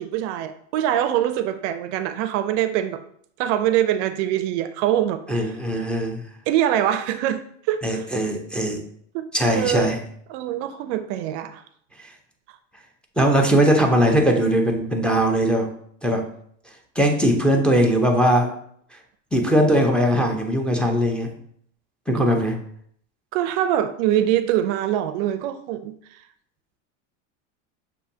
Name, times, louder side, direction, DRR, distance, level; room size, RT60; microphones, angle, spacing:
voice 1, 0.0-3.0 3.4-5.5 6.5-8.1 9.1-9.9 10.3-11.6 22.2-22.3 23.3-25.9, right 11 dB, 65° right, 10 dB, 0.5 m, -24 dB
voice 2, 5.3-6.2 7.8-8.8 9.3-10.0 13.2-15.7 16.0-16.2 17.0-18.5 19.3-21.3 22.1-22.6, equal, 5° left, 2 dB, 0.6 m, -20 dB
6.7 x 2.7 x 2.7 m, 0.64 s
supercardioid pair, 105°, 38 cm